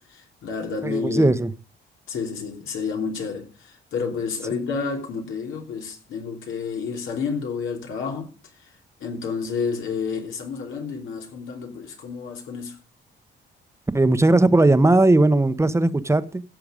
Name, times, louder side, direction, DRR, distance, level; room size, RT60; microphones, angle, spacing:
voice 1, 0.0-1.3 2.1-8.3 8.6-8.7 9.0-12.8, left 5 dB, 80° left, 3.1 m, -30 dB
voice 2, 0.8-1.5 13.9-16.4, right 2 dB, 15° right, 1.0 m, -18 dB
16.0 x 6.8 x 5.1 m
cardioid pair, 90°, 20 cm